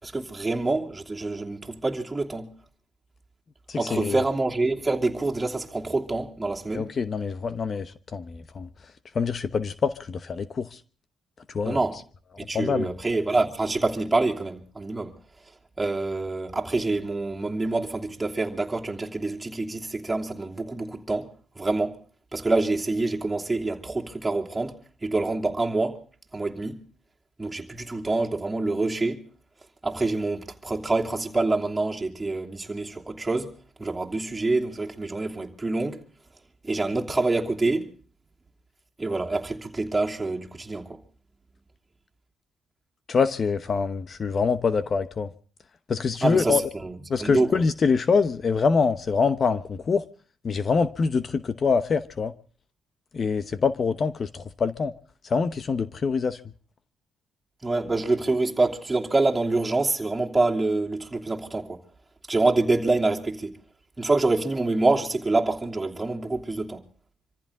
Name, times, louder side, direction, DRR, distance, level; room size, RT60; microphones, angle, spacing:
voice 1, 0.0-2.5 3.8-6.9 11.6-12.0 12.5-15.1 15.8-22.0 22.3-26.0 26.3-26.8 27.4-29.2 29.8-33.5 33.8-36.0 36.6-37.9 39.0-41.0 46.2-47.6 57.6-61.8 62.3-63.6 64.0-66.8, right 2 dB, 15° right, 3.0 m, -26 dB
voice 2, 3.7-4.2 6.7-8.7 9.1-10.8 11.5-11.8 12.5-12.9 43.1-45.3 45.9-46.6 47.1-50.0 50.4-52.3 53.1-54.9 55.2-56.4, left 5 dB, 45° left, 0.9 m, -25 dB
26.5 x 14.5 x 3.7 m
cardioid pair, 90°, 0 cm